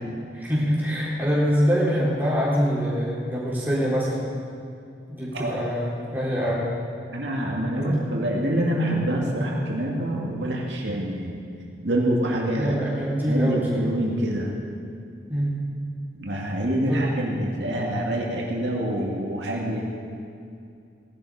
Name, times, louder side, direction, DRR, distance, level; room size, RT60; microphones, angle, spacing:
voice 1, 0.3-4.2 5.1-6.7 7.8-8.1 12.5-13.9 15.3-15.6 16.9-17.1, equal, 10° right, -7 dB, 3.7 m, -24 dB
voice 2, 7.1-11.4 11.8-12.8 13.3-14.5 16.2-19.8, right 1 dB, 80° right, -2 dB, 2.1 m, -26 dB
18.0 x 11.5 x 4.8 m, 2.5 s
head